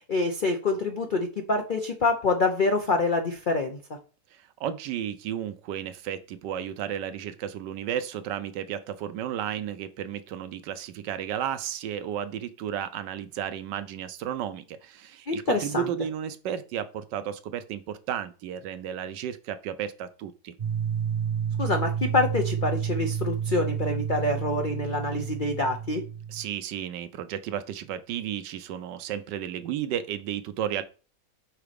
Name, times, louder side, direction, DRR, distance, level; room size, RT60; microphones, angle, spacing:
voice 1, 0.1-3.8 15.3-15.8 21.6-26.0, left 3 dB, 65° left, 0.5 m, -26 dB
voice 2, 4.3-20.5 26.3-30.8, right 10 dB, 75° right, 1.2 m, -33 dB
sound 1, 20.6-26.5, right 8 dB, 50° right, 0.4 m, -30 dB
5.8 x 4.1 x 5.0 m
omnidirectional pair, 2.0 m